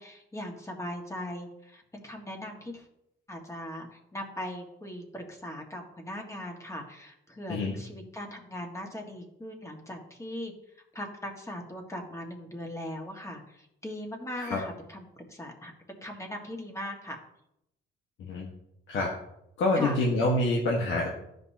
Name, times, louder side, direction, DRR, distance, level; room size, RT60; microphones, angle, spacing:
voice 1, 0.0-2.9 3.3-10.5 10.9-17.2 19.8-20.0, left 1 dB, 15° left, 2 dB, 1.7 m, -39 dB
voice 2, 19.6-21.1, left 2 dB, 75° left, -2 dB, 1.5 m, -26 dB
13.0 x 5.3 x 2.8 m, 0.80 s
cardioid pair, 90°, 20 cm